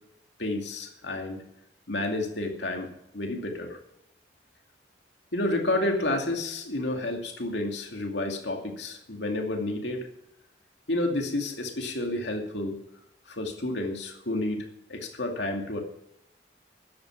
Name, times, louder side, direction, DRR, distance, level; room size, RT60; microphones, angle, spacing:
voice 1, 0.4-1.4 1.9-3.8 5.3-10.1 10.9-12.8 13.3-15.8, left 2 dB, 80° left, 3 dB, 2.5 m, -30 dB
12.5 x 10.0 x 5.9 m, 0.78 s
head